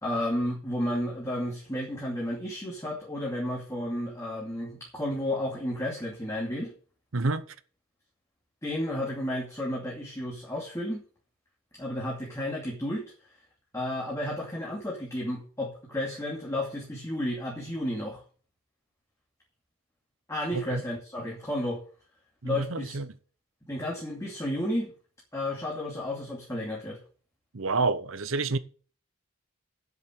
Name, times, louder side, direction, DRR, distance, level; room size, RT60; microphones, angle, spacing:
voice 1, 0.0-6.7 8.6-11.0 11.7-13.0 13.7-18.2 20.3-21.8 22.4-23.0 23.7-24.9 25.3-27.0, left 1 dB, 15° left, 2.5 m, -32 dB
voice 2, 7.1-7.5 20.7-20.8 22.4-23.1 27.5-28.6, right 3 dB, 65° right, 0.9 m, -28 dB
8.0 x 7.3 x 8.6 m
head